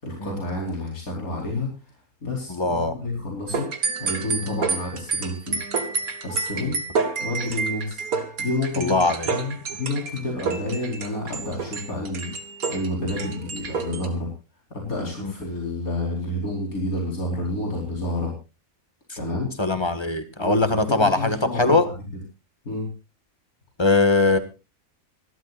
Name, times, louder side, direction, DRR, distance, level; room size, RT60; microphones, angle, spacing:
voice 1, 0.0-1.8 2.2-3.7 4.0-5.6 6.2-6.8 7.2-8.0 8.4-14.3 14.7-18.3 19.2-19.5 20.4-21.9 22.6-22.9, left 2 dB, 85° left, -2 dB, 5.1 m, -29 dB
voice 2, 2.5-2.9 4.4-4.6 6.5-6.7 8.8-9.3 15.2-15.3 19.6-21.8 23.8-24.4, left 3 dB, 20° left, 9 dB, 1.7 m, -21 dB
sound 1, 3.5-14.1, right 5 dB, 90° right, 2.2 m, -29 dB
26.0 x 12.0 x 2.5 m, 0.29 s
omnidirectional pair, 1.5 m